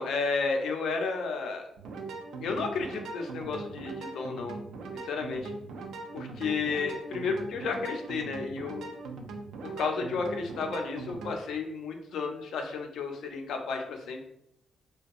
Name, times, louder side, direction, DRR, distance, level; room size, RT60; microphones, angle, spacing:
voice 1, 0.0-1.6 2.4-4.6 5.0-5.5 6.1-8.9 9.6-14.2, left 4 dB, 75° left, 3 dB, 0.4 m, -32 dB
sound 1, 1.8-11.4, right 3 dB, 85° right, 0.3 m, -40 dB
2.6 x 2.2 x 2.4 m, 0.77 s
cardioid pair, 155°, 0 cm